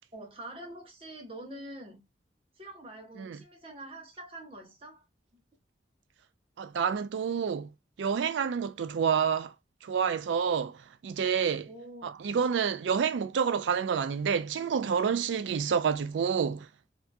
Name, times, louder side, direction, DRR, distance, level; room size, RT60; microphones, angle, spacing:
voice 1, 0.1-2.0 2.6-5.1 11.7-12.2, right 1 dB, 30° right, 0.8 m, -45 dB
voice 2, 6.6-7.7 8.0-9.5 9.8-11.7 12.0-16.7, right 6 dB, 85° right, 0.4 m, -28 dB
2.7 x 2.5 x 2.2 m
head